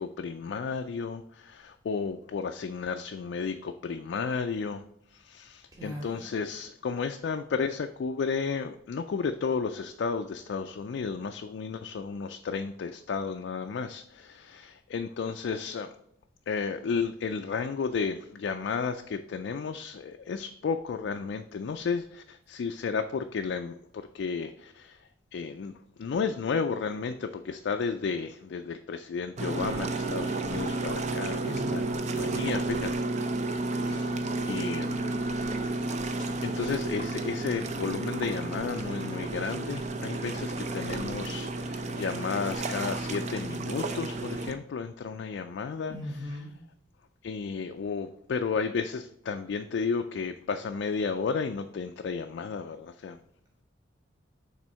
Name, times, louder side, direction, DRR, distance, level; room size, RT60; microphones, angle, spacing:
voice 1, 0.0-4.8 5.1-15.9 16.5-25.0 25.3-25.7 26.0-33.3 33.6-35.3 36.4-46.0 47.2-53.2, left 5 dB, 70° left, 6 dB, 0.3 m, -33 dB
voice 2, 5.7-6.3 31.4-32.5 45.9-46.5, left 1 dB, 20° right, -3 dB, 1.4 m, -39 dB
sound 1, 29.4-44.5, right 2 dB, 35° right, 0.4 m, -32 dB
6.1 x 3.7 x 4.3 m, 0.75 s
head